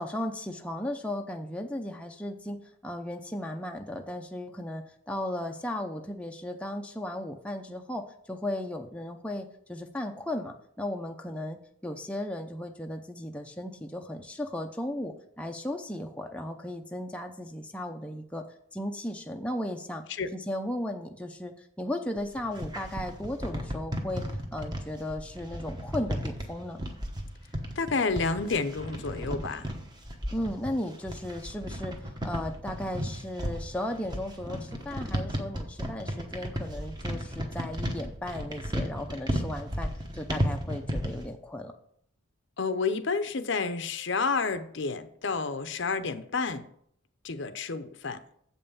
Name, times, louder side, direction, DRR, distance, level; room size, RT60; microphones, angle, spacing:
voice 1, 0.0-18.4 18.7-20.0 20.3-24.2 24.5-26.8 30.3-32.0 32.2-41.7, left 1 dB, 5° left, 3 dB, 0.5 m, -35 dB
sound 1, 22.2-41.3, equal, 20° right, 1.1 m, -34 dB
voice 2, 27.8-29.7 42.6-46.7 47.2-48.2, left 4 dB, 55° left, 11 dB, 0.6 m, -30 dB
7.7 x 5.5 x 7.0 m, 0.68 s
head